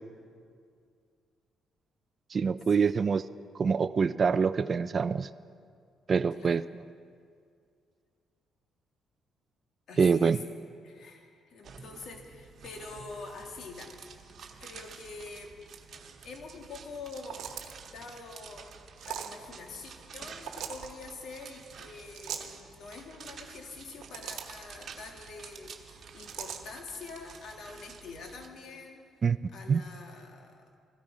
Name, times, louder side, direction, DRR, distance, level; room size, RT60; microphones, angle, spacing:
voice 1, 2.3-3.2 3.6-5.3 6.1-6.8 10.0-10.4 29.2-29.4 29.7-29.8, right 5 dB, 45° right, 14 dB, 0.3 m, -25 dB
voice 2, 9.9-10.4 10.8-14.0 14.6-15.6 16.2-29.0 29.5-30.7, left 3 dB, 70° left, 3 dB, 1.9 m, -45 dB
sound 1, 11.6-28.5, right 6 dB, 60° right, 1.2 m, -50 dB
sound 2, 17.0-17.9 19.0-19.4 20.4-20.9 22.1-22.5 23.8-24.6 26.2-26.6, right 9 dB, 90° right, 1.0 m, -39 dB
15.0 x 13.0 x 5.0 m, 2.2 s
cardioid pair, 90°, 0 cm